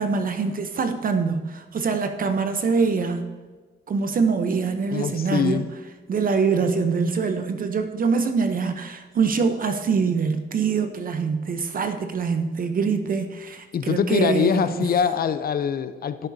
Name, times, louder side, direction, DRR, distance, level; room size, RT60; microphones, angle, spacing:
voice 1, 0.0-3.3 3.9-5.7 6.1-14.9, right 5 dB, 45° right, 7 dB, 0.7 m, -24 dB
voice 2, 4.9-5.7 13.7-16.3, left 7 dB, 50° left, 12 dB, 0.6 m, -23 dB
15.5 x 6.7 x 2.7 m, 1.3 s
cardioid pair, 90°, 20 cm